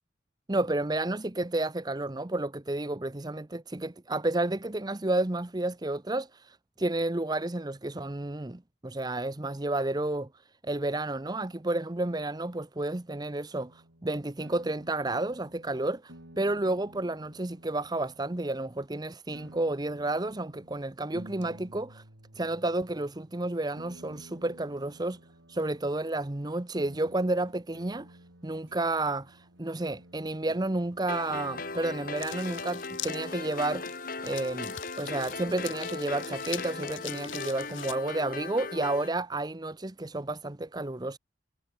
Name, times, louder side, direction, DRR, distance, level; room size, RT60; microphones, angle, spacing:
voice 1, 0.5-10.3 10.6-22.0 22.3-25.2 25.5-28.2 28.4-41.2, right 2 dB, 20° right, 0.8 m, -31 dB
sound 1, 13.6-18.7 19.3-33.1, right 1 dB, 90° right, 4.8 m, -53 dB
sound 2, 31.1-39.1, left 3 dB, 45° left, 3.9 m, -38 dB
sound 3, 32.2-38.0, left 13 dB, 85° left, 1.5 m, -43 dB
head